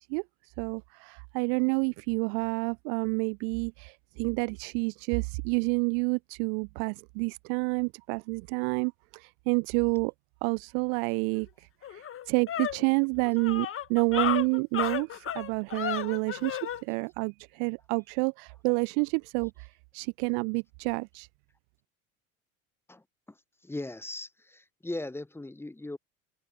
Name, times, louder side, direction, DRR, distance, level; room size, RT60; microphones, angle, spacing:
voice 1, 0.0-10.1 10.4-21.3, right 40 dB or more, 45° right, 0.5 m, -29 dB
sound 1, 11.4-11.5 11.8-16.8, left 10 dB, 30° left, 1.7 m, -33 dB
voice 2, 23.6-26.0, left 2 dB, 5° left, 0.9 m, -38 dB
open air
figure-of-eight pair, 70°, 42 cm